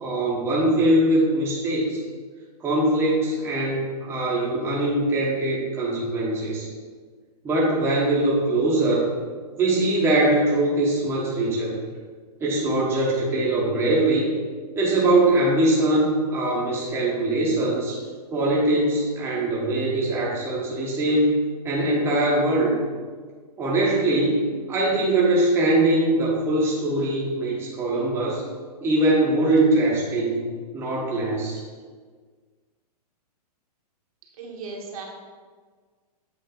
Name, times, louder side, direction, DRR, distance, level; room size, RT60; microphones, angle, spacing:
voice 1, 0.0-2.0 2.6-6.7 7.4-9.1 9.6-11.8 12.4-14.3 14.8-18.0 18.3-22.8 23.6-28.4 28.8-30.4 30.7-31.6, right 1 dB, 10° right, -5 dB, 0.9 m, -22 dB
voice 2, 34.4-35.1, right 4 dB, 60° right, 0 dB, 1.2 m, -36 dB
8.0 x 3.1 x 3.7 m, 1.6 s
hypercardioid pair, 150°, 21 cm